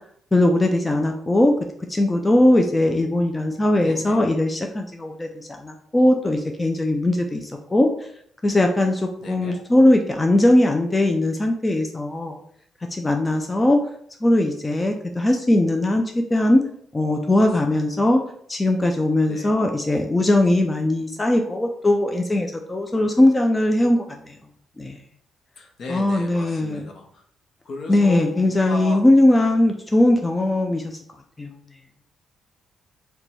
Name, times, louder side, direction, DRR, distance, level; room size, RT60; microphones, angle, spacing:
voice 1, 0.3-1.5 1.9-7.9 8.4-12.4 12.9-13.8 14.2-16.6 16.9-18.2 18.5-24.3 24.8-25.0 25.9-26.8 27.9-31.0 31.4-31.5, left 1 dB, 20° left, 3 dB, 0.3 m, -19 dB
voice 2, 3.5-4.3 9.2-9.6 17.4-17.8 19.3-19.6 25.6-27.2 27.6-29.0, left 3 dB, 60° left, 2 dB, 0.7 m, -36 dB
2.9 x 2.2 x 4.0 m, 0.66 s
cardioid pair, 90°, 0 cm